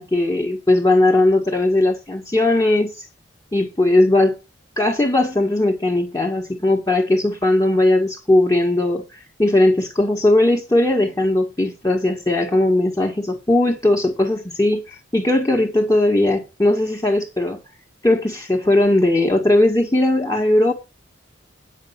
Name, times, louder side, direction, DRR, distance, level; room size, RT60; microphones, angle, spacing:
voice 1, 0.0-3.0 3.5-4.3 4.8-9.1 9.4-17.6 18.0-20.7, left 1 dB, 15° left, 1.3 m, -18 dB
9.0 x 6.4 x 5.7 m
head